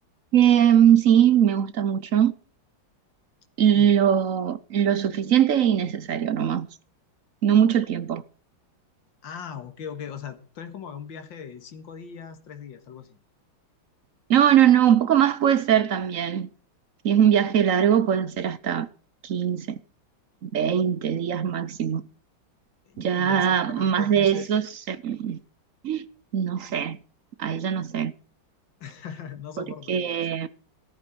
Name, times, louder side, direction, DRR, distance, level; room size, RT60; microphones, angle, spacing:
voice 1, 0.3-2.3 3.6-6.7 7.4-8.2 14.3-16.5 17.0-18.9 19.2-19.8 20.4-22.0 23.0-25.4 25.8-26.1 26.3-27.0 27.4-28.1 29.6-30.5, right 9 dB, 60° right, 0.8 m, -21 dB
voice 2, 9.2-13.2 22.9-24.5 28.8-30.3, left 7 dB, 65° left, 2.4 m, -39 dB
14.0 x 13.0 x 4.5 m
omnidirectional pair, 2.2 m